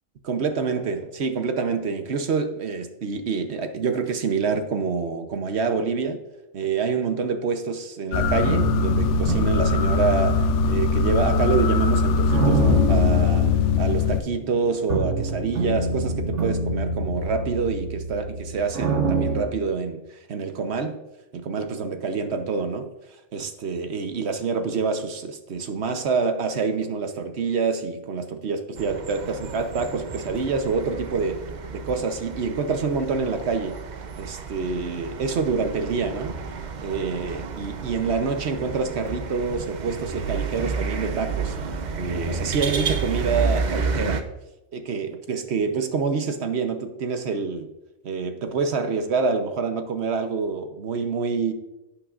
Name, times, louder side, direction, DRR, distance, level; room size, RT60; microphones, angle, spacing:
voice 1, 0.2-6.2 6.5-13.5 13.8-21.0 21.3-22.9 23.3-31.4 31.7-33.8 34.2-36.4 36.8-41.6 42.0-44.2 44.7-47.7 48.0-51.5, right 5 dB, 65° right, 8 dB, 1.1 m, -26 dB
sound 1, 8.1-14.2, left 5 dB, 80° left, 0.9 m, -21 dB
sound 2, 8.2-19.4, right 2 dB, 85° right, 1.6 m, -27 dB
sound 3, 28.8-44.2, right 5 dB, 50° right, 0.7 m, -31 dB
11.0 x 8.7 x 2.4 m, 0.96 s
omnidirectional pair, 1.2 m